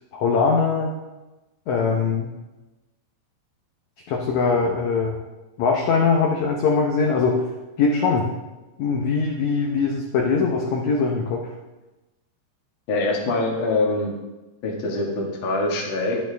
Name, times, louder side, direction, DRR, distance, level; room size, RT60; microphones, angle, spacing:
voice 1, 0.1-0.9 1.7-2.3 4.1-5.2 5.6-7.4 7.8-8.2 8.8-11.5, left 4 dB, 80° left, 0 dB, 1.6 m, -21 dB
voice 2, 12.9-14.1 14.6-16.2, left 2 dB, 50° left, -1 dB, 1.5 m, -24 dB
10.5 x 8.8 x 3.4 m, 1.1 s
omnidirectional pair, 4.6 m